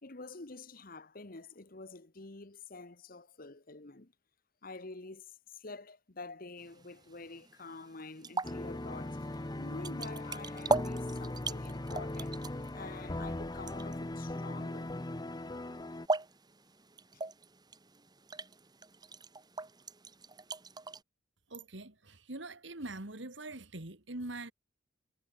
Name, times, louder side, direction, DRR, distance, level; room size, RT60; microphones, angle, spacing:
voice 1, 0.0-4.1 4.6-15.0, left 3 dB, 45° left, 1.3 m, -48 dB
sound 1, 6.6-21.0, right 3 dB, 20° right, 1.5 m, -40 dB
sound 2, 8.4-16.1, left 1 dB, 20° left, 0.7 m, -39 dB
voice 2, 21.5-24.5, right 2 dB, 65° right, 2.4 m, -43 dB
head